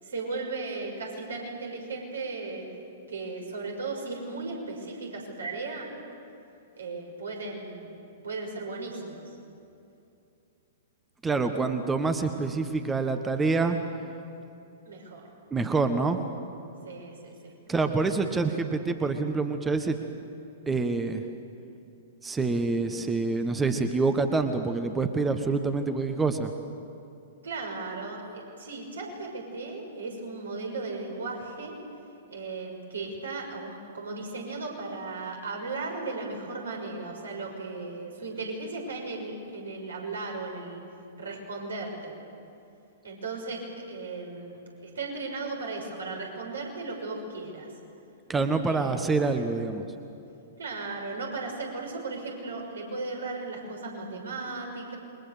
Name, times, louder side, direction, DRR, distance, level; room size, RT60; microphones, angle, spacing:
voice 1, 0.0-2.7 3.1-5.9 6.8-8.0 8.2-9.4 14.8-15.3 16.8-18.0 27.4-31.7 32.3-40.8 41.2-42.1 43.0-47.7 48.7-49.3 50.6-55.0, right 3 dB, 70° right, 1 dB, 6.1 m, -36 dB
voice 2, 11.2-13.8 15.5-16.2 17.7-20.0 20.7-21.2 22.2-26.5 48.3-49.8, right 3 dB, 10° right, 8 dB, 1.4 m, -26 dB
28.0 x 23.5 x 6.9 m, 2.7 s
figure-of-eight pair, 105°, 0 cm